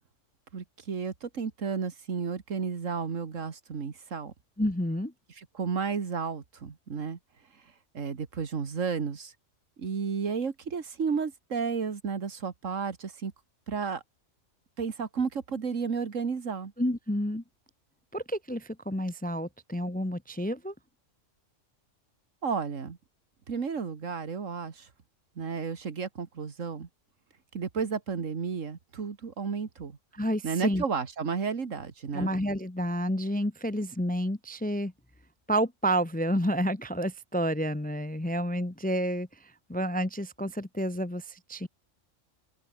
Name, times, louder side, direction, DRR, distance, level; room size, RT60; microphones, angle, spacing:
voice 1, 0.5-4.3 5.4-7.2 7.9-9.3 9.8-13.3 13.7-14.0 14.8-16.7 22.4-23.0 23.5-24.9 25.4-26.9 27.5-30.0 30.4-32.3, right 5 dB, 85° right, 2.1 m, -32 dB
voice 2, 4.6-5.1 16.8-17.4 18.1-20.7 30.1-30.8 32.1-34.9 35.5-39.3 39.7-41.2 41.5-41.7, equal, 10° left, 0.6 m, -29 dB
open air
omnidirectional pair, 1.3 m